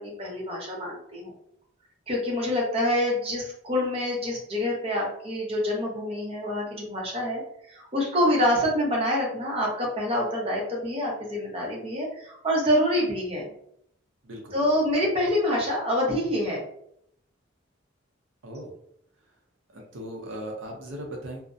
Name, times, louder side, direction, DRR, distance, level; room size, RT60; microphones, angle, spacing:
voice 1, 0.0-1.4 2.1-7.4 7.7-13.5 14.5-16.6 18.5-18.6, left 1 dB, 30° right, -2 dB, 0.8 m, -26 dB
voice 2, 14.2-14.6 18.4-18.7 19.7-21.4, right 1 dB, 85° right, 1 dB, 0.5 m, -38 dB
2.4 x 2.0 x 2.5 m, 0.70 s
head